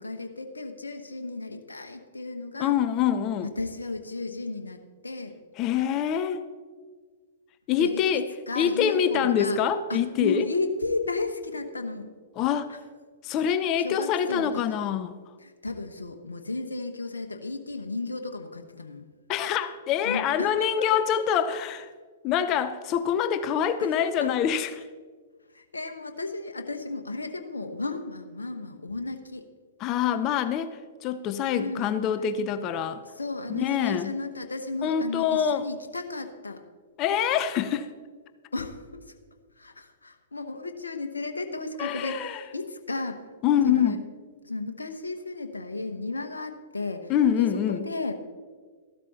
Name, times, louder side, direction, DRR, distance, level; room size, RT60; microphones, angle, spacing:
voice 1, 0.0-2.8 3.4-5.4 7.8-9.6 9.9-12.1 12.7-12.8 13.8-14.6 15.4-19.1 20.0-20.9 23.8-24.3 25.5-29.4 31.5-31.9 33.1-36.6 38.5-39.1 39.6-43.2 43.6-44.0 44.4-47.1 47.4-48.2, left 3 dB, 80° left, 6 dB, 1.1 m, -34 dB
voice 2, 2.6-3.5 5.6-6.5 7.7-8.3 8.6-10.5 12.4-12.8 13.2-15.2 19.3-21.9 22.2-24.8 29.8-33.0 33.5-34.1 34.8-35.7 37.0-37.9 41.8-42.4 43.4-44.0 47.1-47.9, left 8 dB, 35° left, 12 dB, 0.7 m, -25 dB
14.0 x 12.5 x 4.2 m, 1.5 s
figure-of-eight pair, 110°, 0 cm